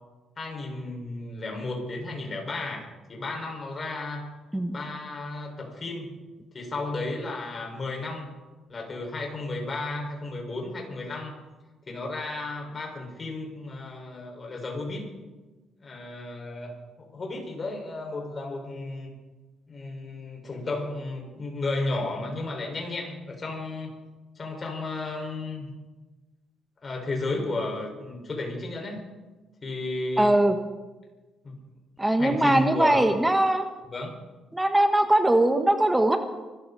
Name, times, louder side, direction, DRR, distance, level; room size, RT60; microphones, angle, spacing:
voice 1, 0.4-2.8 3.1-4.3 4.7-6.2 6.5-8.3 8.7-11.3 11.9-15.1 15.8-16.7 17.0-19.1 19.7-23.9 24.4-25.7 26.8-29.0 29.6-30.3 31.4-31.6 32.2-33.1 33.9-34.2, left 2 dB, 35° left, 1 dB, 5.2 m, -33 dB
voice 2, 30.2-30.5 32.0-33.7 34.5-36.2, right 1 dB, 10° right, 7 dB, 1.4 m, -21 dB
25.0 x 14.0 x 4.2 m, 1.2 s
cardioid pair, 90°, 0 cm